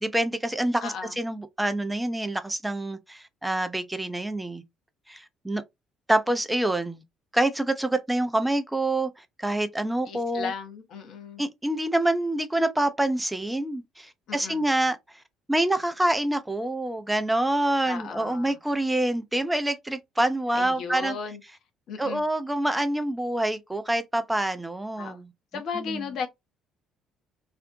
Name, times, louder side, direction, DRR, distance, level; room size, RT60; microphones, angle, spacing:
voice 1, 0.0-4.6 5.1-5.6 6.1-7.0 7.3-9.1 9.4-10.5 11.4-15.0 15.5-21.2 22.0-25.3 25.8-26.0, right 1 dB, 10° right, 0.4 m, -26 dB
voice 2, 0.8-1.2 10.1-11.4 14.3-14.7 17.8-18.6 20.5-21.4 21.9-22.2 25.0-25.2 25.5-26.3, left 5 dB, 55° left, 0.6 m, -35 dB
2.5 x 2.1 x 2.5 m
figure-of-eight pair, 50°, 0 cm